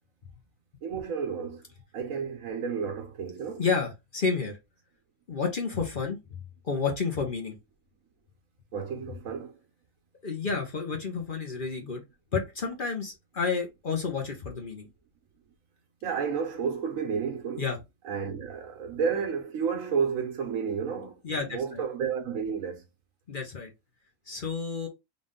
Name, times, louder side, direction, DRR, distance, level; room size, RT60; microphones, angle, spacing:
voice 1, 0.8-1.6 1.9-3.6 8.7-9.5 16.0-17.7 18.0-21.1 21.5-22.8, right 6 dB, 70° right, 1.2 m, -31 dB
voice 2, 3.6-4.6 5.3-6.4 6.6-7.6 10.2-12.0 12.3-14.9 17.6-17.8 21.2-21.8 23.3-23.7 24.3-24.9, left 5 dB, 40° left, 0.9 m, -30 dB
4.0 x 2.5 x 3.6 m
omnidirectional pair, 1.5 m